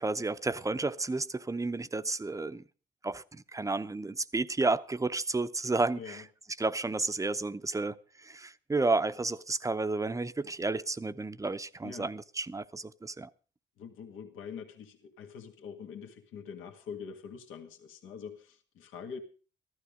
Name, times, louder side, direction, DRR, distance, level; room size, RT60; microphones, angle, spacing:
voice 1, 0.0-2.6 3.0-6.2 6.6-13.3, right 3 dB, 15° right, 0.7 m, -32 dB
voice 2, 13.8-19.2, left 6 dB, 85° left, 1.9 m, -44 dB
14.0 x 13.0 x 5.1 m
cardioid pair, 90°, 20 cm